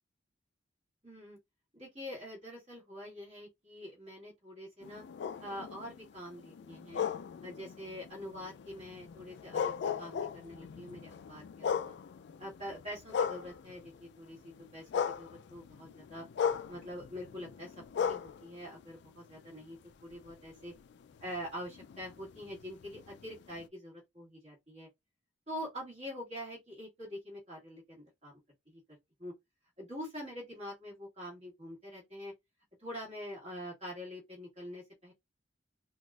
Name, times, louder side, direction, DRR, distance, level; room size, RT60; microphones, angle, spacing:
voice 1, 1.0-1.4 1.7-5.0 5.4-7.0 7.4-11.9 12.4-14.4 14.7-16.2 16.7-20.7 21.2-24.9 25.5-28.3 28.7-28.8 29.2-29.3 29.8-32.3 32.8-35.1, equal, 35° right, 1.8 m, -45 dB
sound 1, 4.8-14.1 14.4-19.6 20.1-23.7, left 7 dB, 65° left, 0.3 m, -38 dB
3.9 x 2.4 x 2.3 m
head